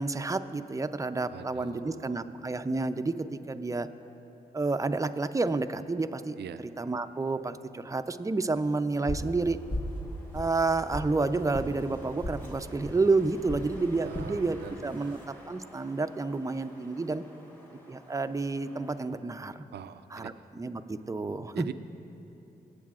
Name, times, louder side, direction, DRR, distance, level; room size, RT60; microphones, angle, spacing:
voice 1, 0.0-3.9 4.5-6.4 6.8-9.6 10.3-17.2 17.9-19.6 20.1-21.7, right 3 dB, 20° right, 9 dB, 0.5 m, -30 dB
voice 2, 1.3-2.2 6.4-6.6 14.0-15.2 19.7-20.3 21.5-21.7, right 9 dB, 75° right, 11 dB, 0.4 m, -43 dB
sound 1, 9.1-9.3 9.7-10.0 10.3-11.1 11.5-11.7 12.2-12.4 12.8-13.0 13.5-13.7 14.1-14.3 14.9-15.2, left 1 dB, 45° left, 1.6 m, -35 dB
Wind, 9.3-19.2, equal, 10° left, 1.5 m, -52 dB
19.5 x 8.3 x 2.4 m, 3.0 s
supercardioid pair, 45°, 18 cm